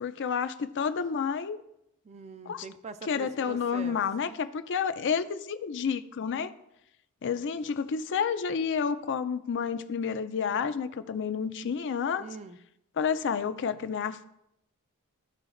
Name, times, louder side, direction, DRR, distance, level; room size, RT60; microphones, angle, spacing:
voice 1, 0.0-1.6 2.5-2.6 3.1-6.5 7.2-12.2 13.0-14.2, left 6 dB, 55° left, 11 dB, 0.5 m, -30 dB
voice 2, 2.0-4.0 12.2-12.6, right 4 dB, 30° right, 11 dB, 0.4 m, -43 dB
14.5 x 4.9 x 2.5 m, 0.83 s
head